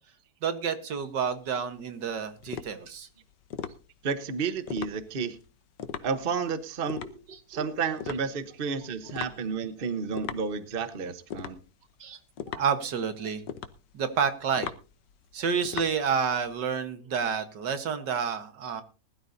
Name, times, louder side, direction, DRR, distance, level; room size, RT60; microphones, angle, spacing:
voice 1, 0.4-3.1 7.0-7.7 12.0-12.2 12.5-13.4 13.9-14.7 15.3-18.8, right 6 dB, 80° right, 9 dB, 2.0 m, -29 dB
sound 1, 1.0-16.6, left 8 dB, 80° left, 1.6 m, -41 dB
voice 2, 4.0-5.4 6.0-7.0 7.5-11.6, right 5 dB, 35° right, 11 dB, 1.1 m, -31 dB
20.0 x 12.0 x 2.7 m, 0.34 s
omnidirectional pair, 1.8 m